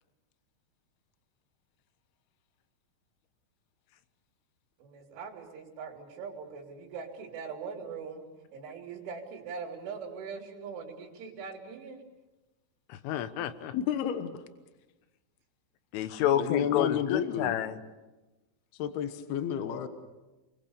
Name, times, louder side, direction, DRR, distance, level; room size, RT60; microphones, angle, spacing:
voice 1, 4.8-8.3 8.5-12.0, right 5 dB, 80° right, -2 dB, 5.2 m, -41 dB
voice 2, 12.9-13.7 15.9-17.8, left 10 dB, 85° left, 11 dB, 3.7 m, -29 dB
voice 3, 13.7-14.4 16.3-17.6 18.7-19.9, left 9 dB, 65° left, 9 dB, 2.9 m, -31 dB
30.0 x 22.5 x 7.0 m, 1.1 s
omnidirectional pair, 5.5 m